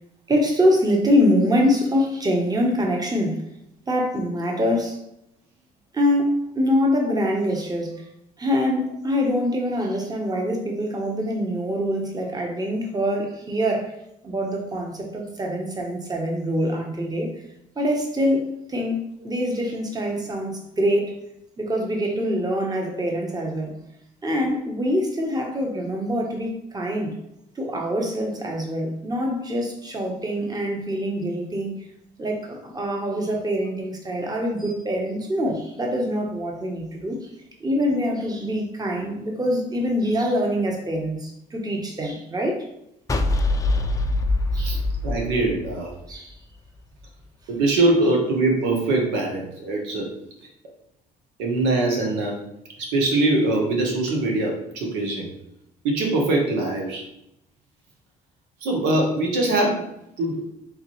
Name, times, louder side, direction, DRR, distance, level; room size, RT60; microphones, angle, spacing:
voice 1, 0.3-3.4 3.9-5.0 5.9-7.9 8.4-13.9 14.2-17.3 17.8-19.0 19.2-21.1 21.6-23.7 24.2-27.1 27.6-31.8 32.2-37.2 37.6-42.6 44.5-44.7 46.1-46.3, equal, 20° right, 1 dB, 1.0 m, -24 dB
sound 1, 43.1-46.3, left 2 dB, 20° left, 0.4 m, -23 dB
voice 2, 44.6-45.9 47.5-50.1 51.4-52.4 52.8-55.3 55.8-57.0 58.6-59.9 60.2-60.4, right 2 dB, 90° right, 0 dB, 0.9 m, -22 dB
3.6 x 3.0 x 3.0 m, 0.79 s
supercardioid pair, 75°, 17 cm